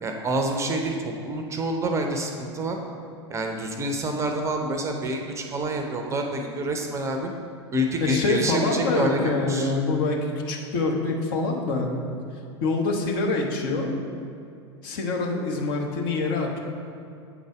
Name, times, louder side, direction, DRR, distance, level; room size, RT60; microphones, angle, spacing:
voice 1, 0.0-2.8 3.3-7.3 7.7-9.7, right 1 dB, 20° right, 3 dB, 0.6 m, -27 dB
voice 2, 8.0-11.9 12.6-13.9 14.8-16.6, left 3 dB, 50° left, 0 dB, 1.0 m, -25 dB
8.1 x 4.0 x 4.9 m, 2.5 s
figure-of-eight pair, 85°, 15 cm